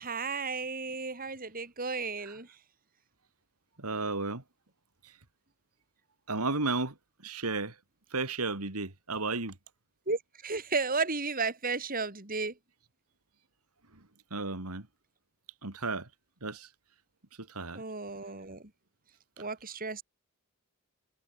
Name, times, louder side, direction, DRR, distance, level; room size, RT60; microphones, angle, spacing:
voice 1, 0.0-2.6 10.1-12.6 17.7-18.7 19.4-20.0, right 4 dB, 40° right, 3.8 m, -33 dB
voice 2, 3.8-4.4 6.3-6.9 7.2-7.7 8.1-9.5 14.3-14.9 15.6-16.1 16.4-16.7 17.4-17.8, right 3 dB, 85° right, 3.1 m, -33 dB
head